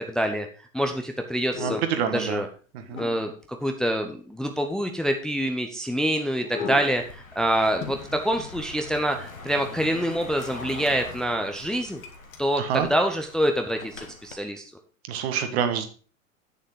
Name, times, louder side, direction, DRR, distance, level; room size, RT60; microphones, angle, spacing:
voice 1, 0.1-0.5 0.7-1.8 2.1-2.5 3.0-3.3 3.6-12.0 12.4-14.7, equal, ahead, 4 dB, 0.7 m, -26 dB
sound 1, 1.4-2.1 2.9-3.6 6.4-7.1 7.5-7.6 7.8-9.3 9.7-9.8 10.4-11.1 11.6-12.4 12.8-13.0 13.8-14.2, left 7 dB, 30° left, 1.9 m, -37 dB
voice 2, 1.6-2.4 2.7-3.0 12.6-12.9 15.1-15.9, right 8 dB, 50° right, 7 dB, 1.7 m, -27 dB
Car passing by, 6.9-14.4, left 3 dB, 85° left, 1.6 m, -43 dB
8.8 x 7.2 x 5.0 m, 0.38 s
figure-of-eight pair, 95°, 40 cm